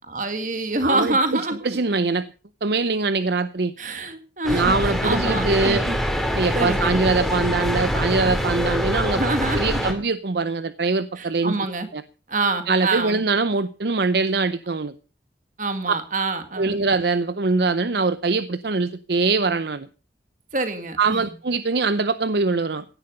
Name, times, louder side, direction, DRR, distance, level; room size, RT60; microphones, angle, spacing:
voice 1, 0.1-1.8 3.8-6.0 6.5-7.0 8.3-8.4 9.1-9.8 11.2-11.9 12.3-13.3 15.6-16.8 20.5-21.3, right 2 dB, 45° right, 8 dB, 2.1 m, -26 dB
voice 2, 0.8-1.2 1.6-2.2 2.6-3.7 4.5-5.8 6.4-9.2 9.6-11.6 11.9-12.0 12.7-14.9 15.9-16.0 16.6-19.9 21.0-22.8, right 3 dB, 65° right, 13 dB, 0.7 m, -22 dB
sound 1, 4.4-9.9, equal, ahead, 2.5 m, -24 dB
16.5 x 10.5 x 5.3 m, 0.36 s
head